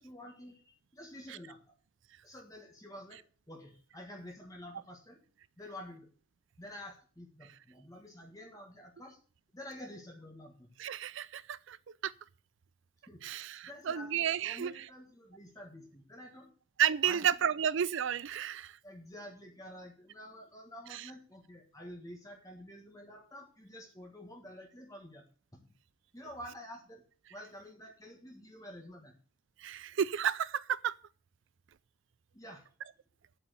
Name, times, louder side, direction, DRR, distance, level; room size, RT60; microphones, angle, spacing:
voice 1, 0.0-1.7 2.2-5.2 5.6-6.1 6.6-9.2 9.5-10.7 13.1-13.2 13.6-16.5 17.0-17.3 18.8-25.2 25.5-25.6 26.1-27.0 27.3-29.1 32.3-32.6, left 1 dB, 15° left, 1.5 m, -49 dB
voice 2, 10.8-11.8 12.0-12.1 13.2-14.7 16.8-18.8 20.9-21.1 29.6-30.9, right 9 dB, 60° right, 0.4 m, -32 dB
8.9 x 7.9 x 6.8 m
head